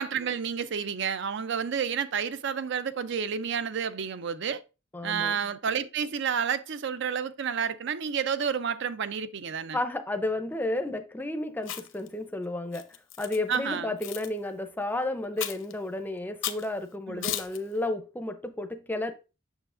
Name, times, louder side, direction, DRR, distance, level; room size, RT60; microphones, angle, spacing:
voice 1, 0.0-4.6 5.0-9.8 13.5-13.9 17.1-17.3, right 7 dB, 60° right, 0.5 m, -30 dB
voice 2, 4.9-5.4 9.7-12.9 13.2-19.1, left 2 dB, 10° left, 0.5 m, -32 dB
Chewing mastication, 11.6-12.1 12.7-13.4 14.0-14.3 15.4-15.7 16.4-16.7 17.2-17.6, left 11 dB, 65° left, 0.7 m, -34 dB
7.1 x 6.6 x 2.5 m
head